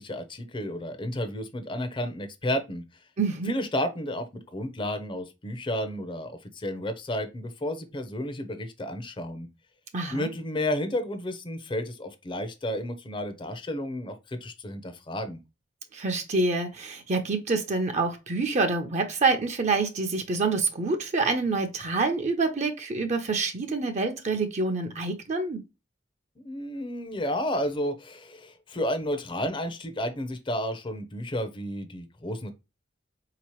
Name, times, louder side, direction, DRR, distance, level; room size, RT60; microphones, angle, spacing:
voice 1, 0.0-2.8 3.5-9.5 10.1-15.4 26.4-32.5, left 1 dB, 25° left, 0.6 m, -32 dB
voice 2, 3.2-3.6 9.9-10.3 15.9-25.6, right 3 dB, 40° right, 0.6 m, -27 dB
4.1 x 2.9 x 2.9 m
head